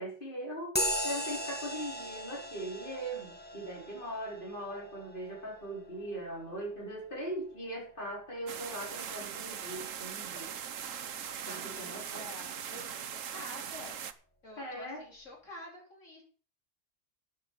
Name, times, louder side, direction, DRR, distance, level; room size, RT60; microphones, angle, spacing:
voice 1, 0.0-10.5 11.4-12.2 14.6-15.0, right 1 dB, 40° left, -3 dB, 4.3 m, -40 dB
sound 1, 0.8-8.7, equal, 10° left, 1.4 m, -39 dB
sound 2, 8.5-14.1, right 8 dB, 85° right, 1.3 m, -40 dB
voice 2, 11.5-14.0 14.4-16.2, left 1 dB, 75° left, -2 dB, 4.7 m, -49 dB
12.5 x 8.4 x 5.5 m, 0.41 s
omnidirectional pair, 1.3 m